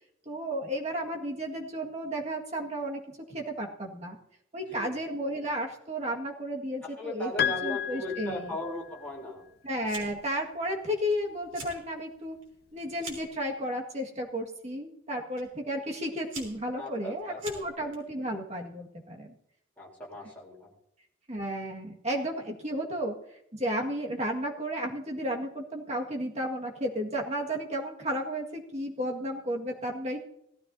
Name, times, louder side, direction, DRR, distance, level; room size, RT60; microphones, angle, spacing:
voice 1, 0.3-3.0 3.3-4.2 4.5-8.6 9.6-12.4 12.7-19.3 21.3-23.2 23.5-30.3, equal, 35° right, 0 dB, 1.9 m, -33 dB
voice 2, 6.8-9.5 16.8-17.4 19.8-20.7, left 1 dB, 10° left, -4 dB, 3.5 m, -38 dB
Piano, 7.4-9.1, left 9 dB, 55° left, 0.6 m, -32 dB
Fire, 9.8-10.3 10.6-11.1 11.4-11.8 12.2-13.4 14.2-14.5 15.4-15.5 16.0-18.0, right 5 dB, 75° right, 3.7 m, -44 dB
18.0 x 13.5 x 2.8 m, 0.79 s
head